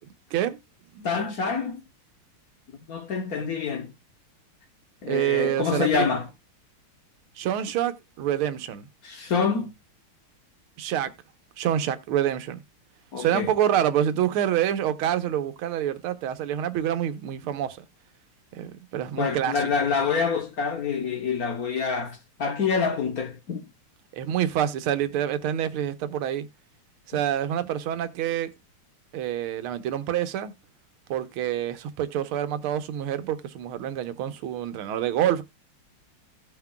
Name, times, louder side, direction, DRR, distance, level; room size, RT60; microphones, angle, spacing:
voice 1, 1.0-1.8 2.9-3.9 5.0-6.3 9.0-9.7 13.1-13.5 19.2-23.7, left 5 dB, 50° left, 1.3 m, -26 dB
voice 2, 5.1-6.1 7.4-8.9 10.8-11.1 11.6-12.6 13.2-17.8 18.5-19.7 24.1-26.5 27.1-28.5 29.1-30.5 31.1-35.4, right 10 dB, 85° right, 1.7 m, -27 dB
16.0 x 5.9 x 2.2 m
omnidirectional pair, 2.3 m